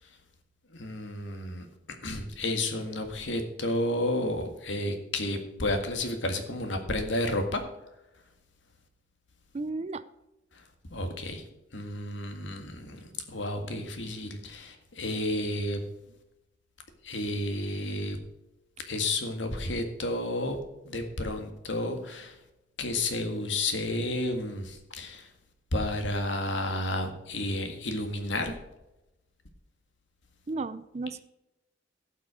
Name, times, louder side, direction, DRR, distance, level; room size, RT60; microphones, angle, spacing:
voice 1, 0.7-1.7 2.0-7.6 10.9-11.4 11.7-15.9 17.0-18.2 18.8-20.6 20.8-22.4 22.8-25.3 25.7-28.5, left 1 dB, 80° left, 6 dB, 1.8 m, -31 dB
voice 2, 9.5-10.0 30.5-31.2, right 3 dB, 35° right, 13 dB, 0.5 m, -34 dB
16.5 x 6.0 x 5.0 m, 0.94 s
head